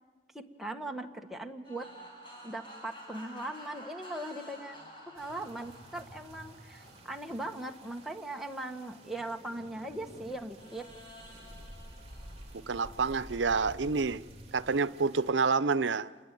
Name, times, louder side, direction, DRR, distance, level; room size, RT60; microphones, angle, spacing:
voice 1, 0.3-1.9 2.4-4.8 5.1-10.9, right 1 dB, ahead, 1.6 m, -39 dB
sound 1, 1.6-9.9 10.6-13.7, equal, 25° left, 7.8 m, -52 dB
sound 2, 5.1-15.3, right 1 dB, 35° right, 3.4 m, -51 dB
voice 2, 12.5-14.2 14.5-16.1, right 4 dB, 85° right, 0.7 m, -28 dB
27.5 x 21.5 x 9.3 m
head